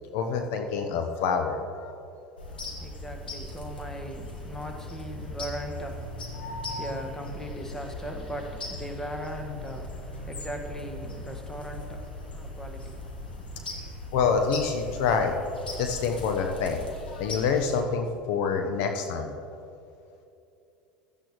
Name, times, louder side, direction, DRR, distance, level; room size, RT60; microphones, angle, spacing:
voice 1, 0.1-1.9 6.4-6.9 14.1-15.3 15.8-19.3, left 5 dB, 60° left, 0.9 m, -27 dB
sound 1, 2.4-17.8, left 2 dB, 85° left, 1.7 m, -39 dB
voice 2, 2.5-14.1, equal, 10° left, 1.5 m, -39 dB
16.0 x 12.5 x 3.1 m
figure-of-eight pair, 75°, 5 cm